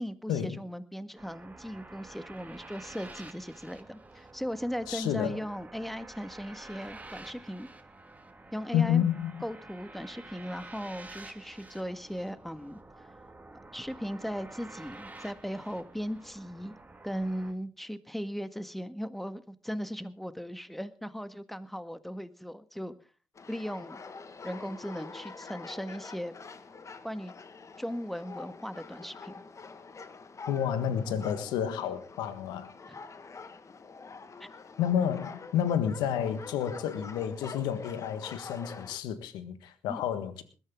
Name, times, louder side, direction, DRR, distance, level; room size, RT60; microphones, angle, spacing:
voice 1, 0.0-7.7 8.5-9.0 9.4-13.1 13.7-16.7 17.0-22.9 23.5-24.0 24.4-26.3 27.0-27.3 27.8-29.3 34.4-34.5 39.9-40.0, equal, ahead, 1.7 m, -38 dB
sound 1, 1.2-17.5, right 2 dB, 20° right, 2.7 m, -49 dB
voice 2, 4.9-5.4 8.7-9.4 30.5-32.7 34.8-40.4, left 9 dB, 85° left, 1.5 m, -30 dB
sound 2, 23.4-39.0, left 4 dB, 45° left, 1.7 m, -46 dB
21.0 x 12.5 x 3.7 m
hypercardioid pair, 45°, 7 cm